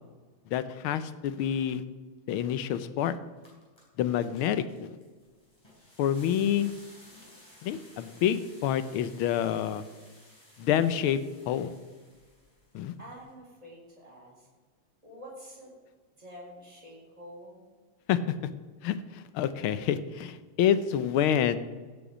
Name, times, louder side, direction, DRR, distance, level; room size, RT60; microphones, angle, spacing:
voice 1, 0.5-1.8 2.3-3.2 4.0-4.9 6.0-6.7 7.6-9.8 10.6-11.2 11.5-11.7 12.7-12.9 18.1-18.2 18.8-21.6, left 10 dB, 85° left, 13 dB, 1.6 m, -27 dB
sound 1, 3.2-13.3, left 1 dB, 10° left, 4.3 m, -57 dB
voice 2, 13.0-14.5 15.0-15.7 16.2-17.6, equal, 15° right, -4 dB, 4.1 m, -47 dB
16.0 x 7.1 x 5.0 m, 1.4 s
omnidirectional pair, 2.3 m